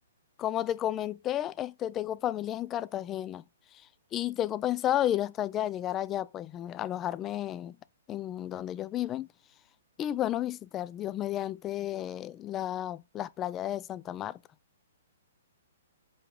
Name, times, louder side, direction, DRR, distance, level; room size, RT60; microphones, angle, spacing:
voice 1, 0.4-3.4 4.1-7.8 8.1-9.3 10.0-14.4, left 12 dB, 20° left, 0.4 m, -32 dB
7.7 x 3.6 x 5.3 m
hypercardioid pair, 145°, 0 cm